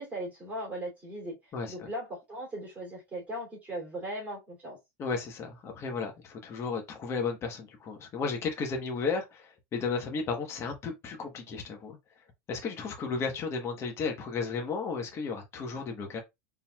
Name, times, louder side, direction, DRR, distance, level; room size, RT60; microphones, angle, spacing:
voice 1, 0.0-1.4 1.7-4.8, right 1 dB, 15° right, 2.7 m, -38 dB
voice 2, 1.5-1.9 5.0-12.0 12.5-16.2, left 4 dB, 30° left, 1.1 m, -34 dB
4.3 x 3.9 x 2.3 m
supercardioid pair, 135°, 9 cm